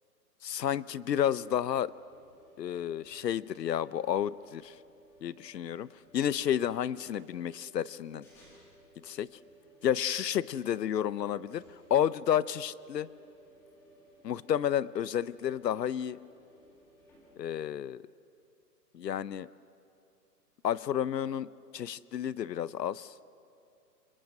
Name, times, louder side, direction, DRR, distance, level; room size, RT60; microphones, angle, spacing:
voice 1, 0.4-1.9 2.6-4.7 5.2-5.9 6.1-8.3 9.0-9.3 9.8-11.6 11.9-13.1 14.2-16.2 17.4-18.0 18.9-19.5 20.6-23.1, left 10 dB, 85° left, 19 dB, 0.8 m, -31 dB
sound 1, 1.3-17.4, right 1 dB, 5° left, 1.4 m, -60 dB
29.0 x 23.5 x 6.6 m, 2.6 s
hypercardioid pair, 175°, 48 cm